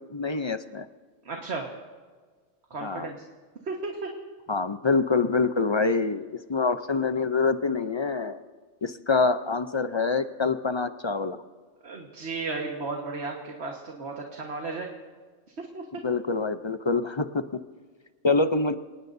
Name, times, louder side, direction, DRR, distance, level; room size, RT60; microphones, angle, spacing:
voice 1, 0.1-0.9 2.8-3.1 4.5-8.4 8.8-11.4 16.0-17.4 18.2-18.7, left 4 dB, 35° left, 10 dB, 0.4 m, -25 dB
voice 2, 1.3-1.7 2.7-3.2 3.6-4.1 9.1-9.2 11.8-14.9 15.6-16.0, right 3 dB, 65° right, 1 dB, 1.7 m, -34 dB
27.0 x 19.0 x 2.7 m, 1.5 s
omnidirectional pair, 1.2 m